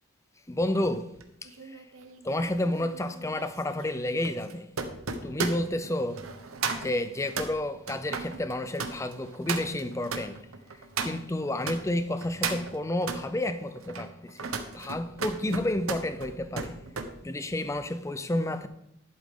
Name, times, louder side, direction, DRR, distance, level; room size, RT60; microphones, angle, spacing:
voice 1, 0.5-1.1 1.4-1.9 2.2-4.7 5.2-6.2 6.7-10.5 11.0-16.8 17.2-18.7, left 1 dB, 15° left, 0.5 m, -30 dB
sound 1, 1.2-11.8 12.2-13.2 13.8-17.1 17.5-17.8, right 5 dB, 90° right, 1.1 m, -36 dB
11.0 x 8.4 x 3.8 m
head